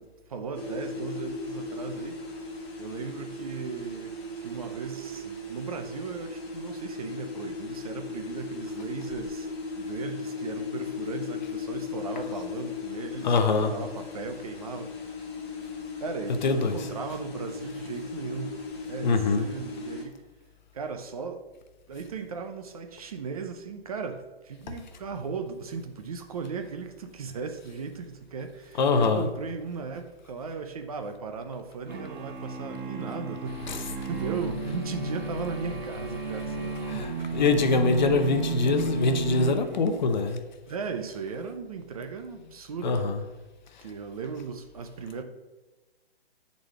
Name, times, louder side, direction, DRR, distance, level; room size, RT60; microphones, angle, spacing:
voice 1, 0.0-2.3 2.8-9.5 9.8-15.2 16.0-18.6 18.9-20.2 20.7-21.4 21.9-36.8 37.2-37.4 40.7-43.0 43.8-45.2, right 5 dB, 40° right, 6 dB, 0.5 m, -37 dB
sound 1, 0.5-20.1, left 4 dB, 15° left, 0.8 m, -37 dB
voice 2, 13.2-13.7 16.4-16.9 19.0-19.5 28.8-29.3 33.7-33.9 36.8-40.4 42.8-43.2 43.7-43.8, left 4 dB, 45° left, 8 dB, 0.6 m, -24 dB
sound 2, 31.9-40.2, right 5 dB, 55° right, 1.0 m, -33 dB
sound 3, 33.4-39.5, left 3 dB, 70° left, 0.9 m, -42 dB
8.4 x 4.1 x 3.2 m, 1.2 s
figure-of-eight pair, 135°, 31 cm